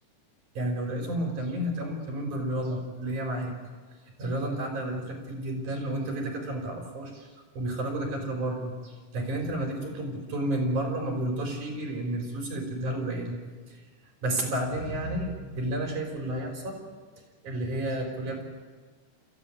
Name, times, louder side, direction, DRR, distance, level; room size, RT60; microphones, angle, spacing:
voice 1, 0.5-3.5 4.2-7.3 7.5-13.4 13.7-13.8 14.2-16.8 17.4-18.4, right 1 dB, 70° right, 2 dB, 5.3 m, -31 dB
27.5 x 15.5 x 9.7 m, 1.5 s
omnidirectional pair, 3.6 m